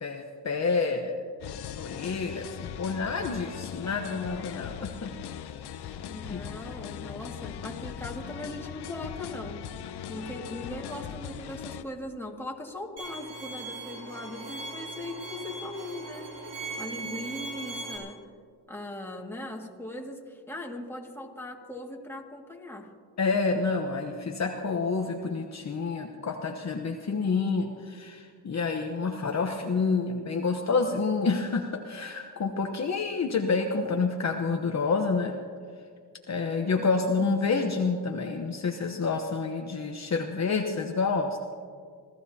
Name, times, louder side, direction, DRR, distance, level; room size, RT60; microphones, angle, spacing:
voice 1, 0.0-1.2 1.8-5.1 5.8-6.0 6.3-6.5 23.2-35.3 36.3-41.4, left 4 dB, 40° left, 3 dB, 1.0 m, -28 dB
sound 1, 1.4-11.8, left 9 dB, 70° left, 0.8 m, -39 dB
voice 2, 6.1-9.6 10.1-18.2 18.7-22.9 32.5-32.7, left 1 dB, 5° left, 0 dB, 2.1 m, -39 dB
Bowed string instrument, 13.0-18.0, right 2 dB, 80° right, 3.7 m, -39 dB
26.5 x 15.0 x 2.9 m, 2.1 s
cardioid pair, 85°, 41 cm